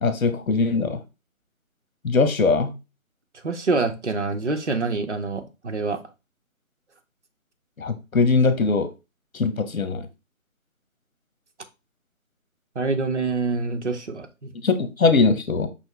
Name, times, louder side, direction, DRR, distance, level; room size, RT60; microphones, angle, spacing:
voice 1, 0.0-1.0 2.0-2.7 7.8-8.9 9.3-10.1 14.6-15.7, left 4 dB, 70° left, 1.0 m, -21 dB
voice 2, 3.4-6.0 12.8-14.7, right 3 dB, 55° right, 0.7 m, -26 dB
5.3 x 2.9 x 3.3 m
figure-of-eight pair, 170°, 42 cm